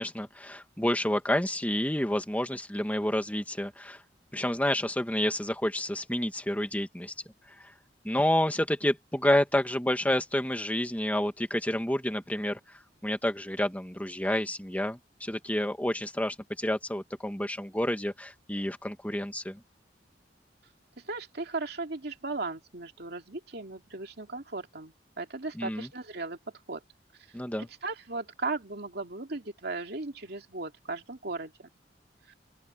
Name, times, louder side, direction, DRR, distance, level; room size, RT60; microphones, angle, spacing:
voice 1, 0.0-4.0 4.3-7.1 8.0-12.6 13.0-19.6 25.6-25.9 27.3-27.7, left 1 dB, 10° left, 1.8 m, -29 dB
voice 2, 21.0-26.4 26.7-26.8 27.6-31.7 32.3-32.4, right 3 dB, 65° right, 2.6 m, -37 dB
open air
head